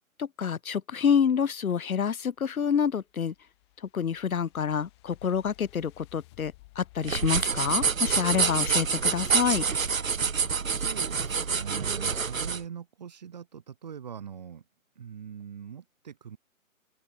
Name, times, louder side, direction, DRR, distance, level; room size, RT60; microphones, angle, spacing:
voice 1, 0.2-3.3 3.9-9.6, left 7 dB, 75° left, 0.6 m, -27 dB
sound 1, 2.7-9.5, left 21 dB, 20° left, 2.9 m, -58 dB
sound 2, 7.0-12.6, right 5 dB, 70° right, 1.1 m, -27 dB
voice 2, 10.6-14.6 15.0-16.4, right 8 dB, 30° right, 1.2 m, -41 dB
open air
figure-of-eight pair, 140°, 42 cm